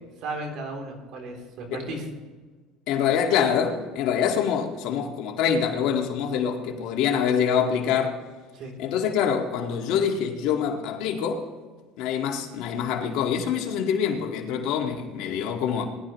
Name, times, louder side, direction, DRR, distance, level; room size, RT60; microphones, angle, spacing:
voice 1, 0.2-2.1 8.5-8.7, right 2 dB, 60° right, 3.4 m, -35 dB
voice 2, 2.9-8.2 8.8-11.4 12.0-15.9, left 7 dB, 70° left, 2.0 m, -25 dB
20.5 x 12.0 x 3.2 m
supercardioid pair, 115°, 0 cm